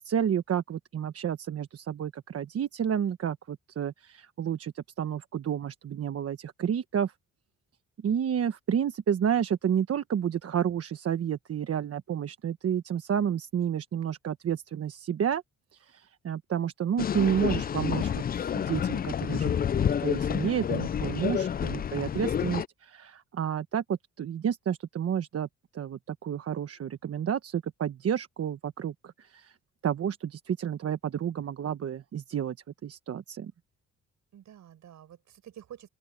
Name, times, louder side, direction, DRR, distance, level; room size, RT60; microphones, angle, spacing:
voice 1, 0.0-7.1 8.0-15.4 15.7-25.5 25.7-29.5 29.8-32.6 32.8-33.5, right 8 dB, 50° right, 1.2 m, -30 dB
sound 1, 17.0-22.7, left 8 dB, 30° left, 0.4 m, -29 dB
voice 2, 21.2-21.9 34.3-35.9, right 10 dB, 70° right, 7.5 m, -50 dB
open air
cardioid pair, 90°, 30 cm